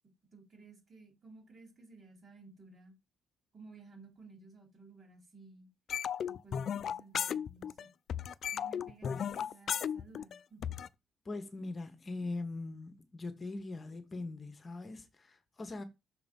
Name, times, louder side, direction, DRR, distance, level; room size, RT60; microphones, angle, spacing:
voice 1, 0.3-2.9 3.5-5.7 6.3-7.9 8.5-10.6, right 3 dB, 45° right, 3.3 m, -56 dB
sound 1, 5.9-7.8 8.1-10.9, left 8 dB, 60° left, 0.4 m, -35 dB
voice 2, 11.2-15.8, left 2 dB, 35° left, 1.2 m, -41 dB
6.3 x 3.8 x 5.4 m
cardioid pair, 90°, 0 cm